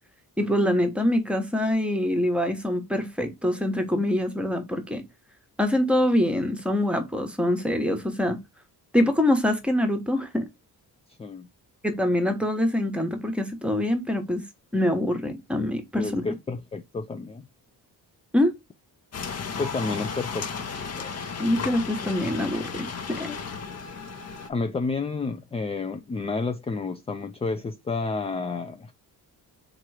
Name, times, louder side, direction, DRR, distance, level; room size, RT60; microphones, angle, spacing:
voice 1, 0.4-5.0 5.6-8.4 8.9-10.5 11.8-14.4 14.7-16.2 18.3-18.5 21.4-23.4, left 1 dB, 5° right, 1.0 m, -24 dB
voice 2, 16.0-17.5 19.6-20.7 20.9-21.1 24.5-28.9, left 3 dB, 15° left, 0.3 m, -30 dB
sound 1, 19.1-24.5, left 5 dB, 40° left, 0.8 m, -34 dB
3.8 x 3.0 x 4.6 m
cardioid pair, 115°, 39 cm